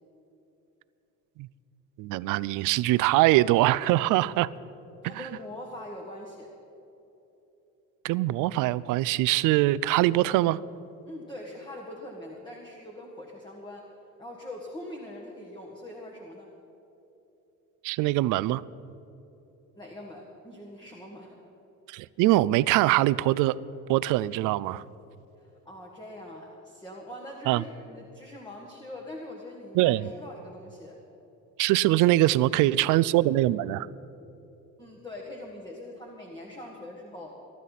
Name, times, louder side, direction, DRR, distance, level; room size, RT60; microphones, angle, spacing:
voice 1, 2.0-4.5 5.0-5.3 8.0-10.6 17.8-18.6 21.9-23.6 23.9-24.8 27.5-27.6 29.7-30.1 31.6-33.9, right 16 dB, 75° right, 19 dB, 0.5 m, -23 dB
voice 2, 5.0-6.5 11.1-13.9 14.2-16.5 19.8-21.4 25.4-31.0 34.8-37.3, left 1 dB, 15° left, -2 dB, 1.8 m, -42 dB
23.0 x 12.0 x 4.1 m, 3.0 s
cardioid pair, 130°, 32 cm